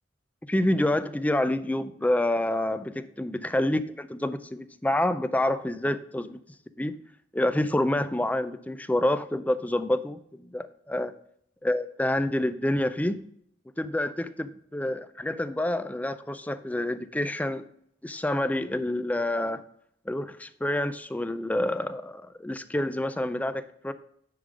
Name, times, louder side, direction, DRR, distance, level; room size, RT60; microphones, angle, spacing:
voice 1, 0.5-6.4 6.8-6.9 7.3-11.1 11.6-13.3 13.8-17.6 18.0-19.6 20.1-23.9, left 1 dB, 10° left, 12 dB, 0.4 m, -28 dB
10.0 x 3.7 x 4.8 m, 0.71 s
head